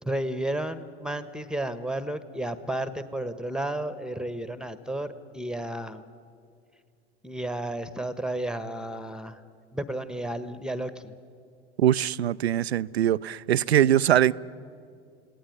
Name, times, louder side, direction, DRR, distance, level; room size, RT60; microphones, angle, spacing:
voice 1, 0.0-6.1 7.2-9.4 9.7-11.1, right 1 dB, ahead, 1.2 m, -32 dB
voice 2, 11.8-14.3, right 11 dB, 80° right, 0.5 m, -22 dB
30.0 x 18.0 x 9.5 m
figure-of-eight pair, 70°, 31 cm